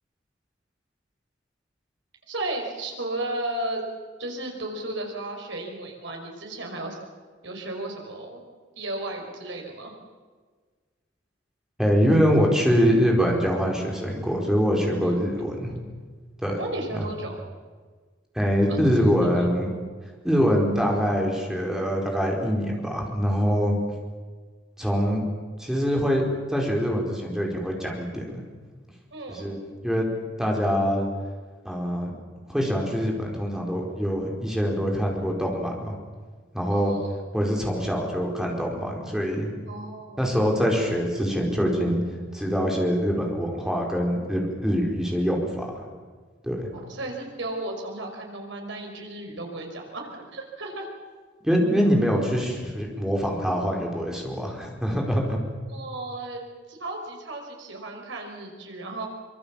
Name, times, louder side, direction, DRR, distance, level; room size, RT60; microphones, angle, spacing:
voice 1, 2.3-3.8 4.2-7.0 7.4-8.4 8.8-10.0 15.0-15.1 16.6-17.4 18.7-19.5 29.1-29.6 36.7-37.2 39.7-40.2 46.7-50.9 55.7-56.4 56.7-59.1, right 2 dB, 75° right, 2 dB, 5.4 m, -34 dB
voice 2, 11.8-15.8 16.4-16.6 16.9-17.1 18.3-19.7 20.2-23.7 24.8-25.2 25.6-28.1 29.3-29.6 29.8-30.1 30.4-31.1 31.6-32.1 32.5-35.9 36.5-36.9 37.3-39.6 40.2-42.0 42.3-45.6 46.4-46.7 51.4-55.4, equal, 5° right, -1 dB, 4.8 m, -24 dB
24.5 x 23.5 x 7.3 m, 1.5 s
head